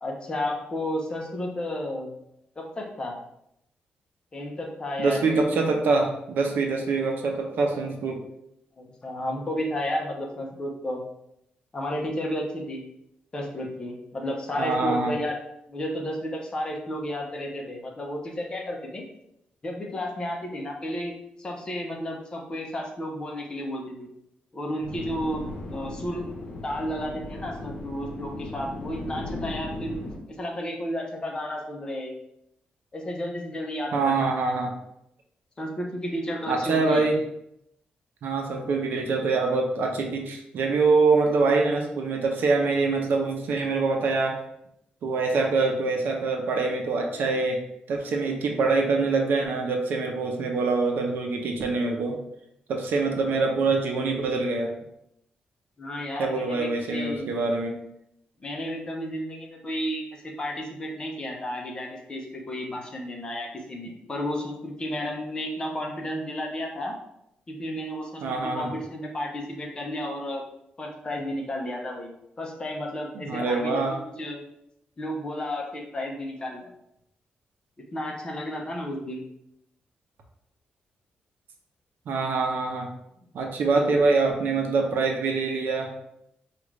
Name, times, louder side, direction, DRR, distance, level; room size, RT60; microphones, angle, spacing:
voice 1, 0.0-2.1 2.6-3.2 4.3-5.4 8.8-11.0 11.7-12.8 13.3-15.4 15.7-19.0 19.6-24.1 24.5-25.4 25.7-26.3 26.6-30.0 30.3-32.2 32.9-34.1 35.6-37.1 55.8-57.3 58.4-66.9 67.5-70.4 70.8-74.4 75.0-76.7 77.8-79.2 83.6-84.2, left 1 dB, 25° left, 0 dB, 0.8 m, -32 dB
voice 2, 5.0-8.2 14.6-15.1 33.9-34.7 36.5-37.2 38.2-44.4 45.0-47.6 47.9-52.2 52.7-54.7 56.2-57.7 68.2-68.7 73.1-74.0 82.1-82.9 83.3-85.9, right 3 dB, 75° right, 2 dB, 0.7 m, -24 dB
sound 1, 24.8-30.2, left 2 dB, 60° left, 0.9 m, -37 dB
4.9 x 2.5 x 3.1 m, 0.78 s
wide cardioid pair, 145°, 3 cm